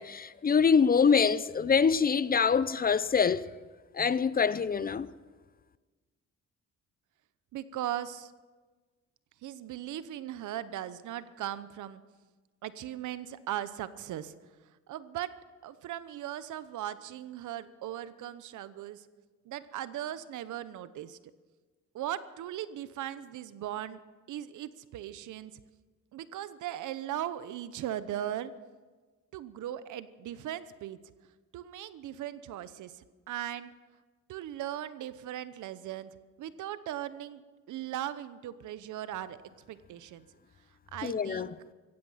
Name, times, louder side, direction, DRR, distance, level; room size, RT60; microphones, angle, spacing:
voice 1, 0.0-3.5 3.9-5.1 41.0-41.5, left 6 dB, 30° left, 0.6 m, -25 dB
voice 2, 7.5-8.3 9.4-12.0 12.6-14.3 14.9-15.3 15.6-19.1 19.5-21.2 21.9-24.0 24.3-25.5 26.1-28.5 29.3-31.0 31.5-33.7 34.3-36.1 36.4-37.4 37.7-39.4 39.7-40.3 40.9-41.5, right 12 dB, 80° right, 0.9 m, -38 dB
16.5 x 15.0 x 5.7 m
cardioid pair, 90°, 30 cm